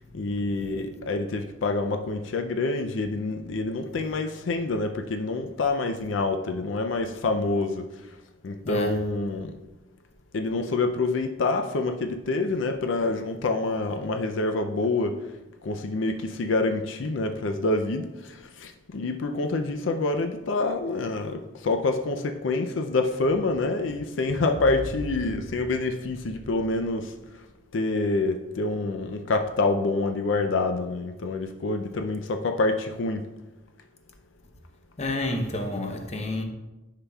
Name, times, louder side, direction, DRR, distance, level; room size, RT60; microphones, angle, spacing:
voice 1, 0.1-7.9 8.4-9.6 10.3-15.2 15.6-27.1 27.7-33.3, left 3 dB, 85° left, 0.5 m, -27 dB
sound 1, 24.5-27.6, right 1 dB, 55° right, 0.6 m, -40 dB
voice 2, 35.0-36.4, left 1 dB, 35° left, 0.8 m, -29 dB
10.0 x 5.7 x 2.3 m
head